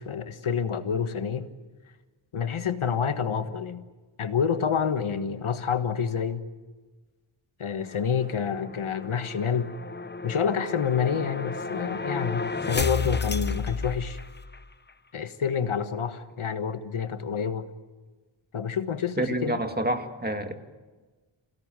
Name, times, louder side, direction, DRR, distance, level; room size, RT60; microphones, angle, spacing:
voice 1, 0.0-1.5 2.3-3.8 4.2-6.4 7.6-9.7 10.2-14.2 15.1-17.7 18.5-19.6, left 7 dB, 75° left, 9 dB, 1.5 m, -28 dB
sound 1, 7.9-14.6, left 3 dB, 20° left, 0.8 m, -33 dB
voice 2, 19.2-20.5, right 1 dB, 20° right, 6 dB, 2.1 m, -28 dB
28.0 x 17.5 x 9.1 m, 1.3 s
wide cardioid pair, 95°, 50 cm